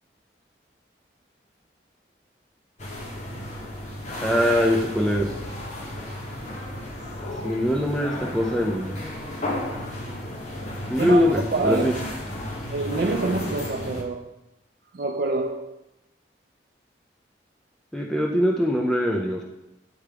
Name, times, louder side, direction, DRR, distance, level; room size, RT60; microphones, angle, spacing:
sound 1, 2.8-14.0, left 1 dB, 40° left, 1.0 m, -33 dB
voice 1, 4.2-5.3 7.4-8.9 10.9-11.9 17.9-19.4, equal, 5° left, 0.5 m, -22 dB
voice 2, 11.0-12.0 12.7-14.3 14.9-15.8, right 3 dB, 55° right, 0.4 m, -26 dB
9.8 x 3.5 x 3.4 m
head